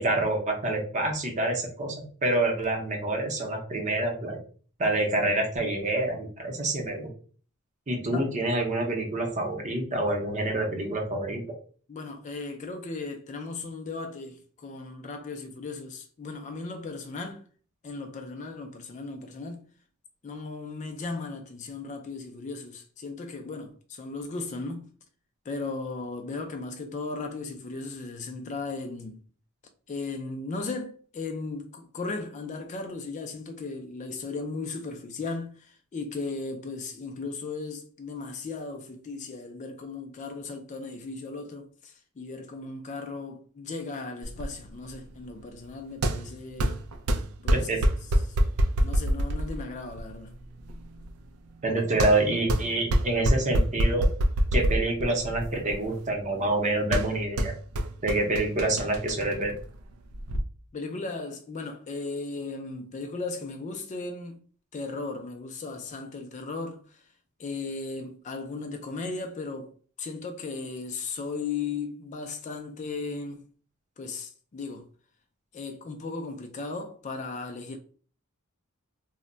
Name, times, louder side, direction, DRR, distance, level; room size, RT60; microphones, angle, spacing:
voice 1, 0.0-2.0 2.2-4.4 4.8-7.1 7.9-11.4 47.5-47.8 51.6-54.1 54.5-57.5 58.0-59.5, right 2 dB, 35° right, 0.7 m, -27 dB
voice 2, 11.9-17.4 17.8-19.6 20.2-24.9 25.5-29.2 29.9-46.8 47.4-47.7 48.2-48.4 48.8-50.4 60.7-64.4 64.7-67.0 67.4-73.4 74.0-74.9 75.5-77.8, left 3 dB, 35° left, 0.3 m, -36 dB
sound 1, 44.2-60.4, right 1 dB, 90° right, 0.4 m, -28 dB
2.2 x 2.1 x 3.8 m
head